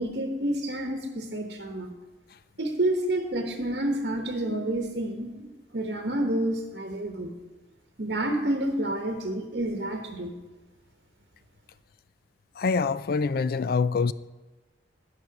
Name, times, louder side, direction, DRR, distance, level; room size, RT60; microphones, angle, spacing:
voice 1, 0.0-1.9 2.6-7.3 8.0-10.3, right 1 dB, 65° right, 1.0 m, -29 dB
voice 2, 12.6-14.1, left 4 dB, 55° left, 0.3 m, -25 dB
12.0 x 5.5 x 5.9 m
head